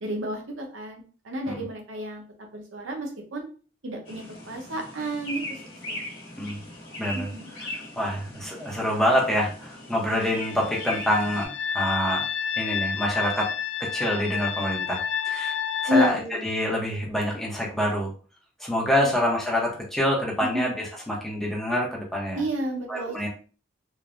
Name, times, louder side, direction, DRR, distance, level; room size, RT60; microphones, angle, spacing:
voice 1, 0.0-2.2 2.5-3.4 3.8-5.6 5.9-6.1 7.1-7.5 15.9-16.4 19.0-19.1 20.5-20.6 22.3-23.3, equal, 80° right, 2 dB, 0.7 m, -30 dB
sound 1, 4.0-11.5, left 1 dB, 45° left, 1.2 m, -39 dB
voice 2, 7.0-7.3 7.6-12.2 12.6-13.5 13.8-15.0 15.2-15.6 15.8-18.1 18.6-22.4 22.9-23.3, equal, ahead, -3 dB, 0.6 m, -26 dB
sound 2, 10.1-16.1, left 7 dB, 65° left, 0.3 m, -30 dB
3.2 x 2.0 x 2.4 m, 0.38 s
head